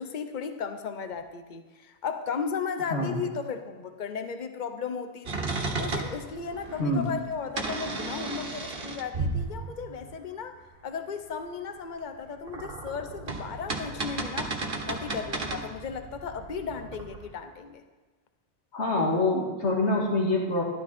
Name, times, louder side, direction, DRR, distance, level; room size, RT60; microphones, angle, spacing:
voice 1, 0.0-5.5 5.8-14.6 14.9-17.8, left 6 dB, 45° left, 8 dB, 1.0 m, -35 dB
voice 2, 2.9-3.2 6.8-7.1 18.7-20.6, left 2 dB, 75° left, -1 dB, 2.4 m, -25 dB
sound 1, 5.3-10.2 12.2-17.3, right 3 dB, 55° right, 1.5 m, -34 dB
13.0 x 12.5 x 4.3 m, 1.3 s
omnidirectional pair, 1.2 m